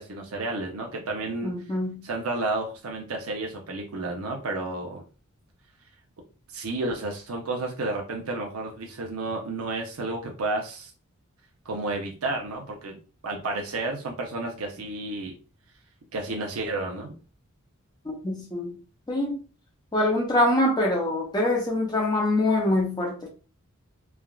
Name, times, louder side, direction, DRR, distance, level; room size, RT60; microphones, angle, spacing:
voice 1, 0.0-1.5 2.0-5.0 6.5-10.9 11.7-13.0 13.2-15.3 16.1-17.1, right 2 dB, 70° right, 0.6 m, -31 dB
voice 2, 1.4-2.0 18.1-18.7 19.1-19.4 19.9-23.2, left 1 dB, 20° left, 0.6 m, -24 dB
3.3 x 2.3 x 2.3 m
head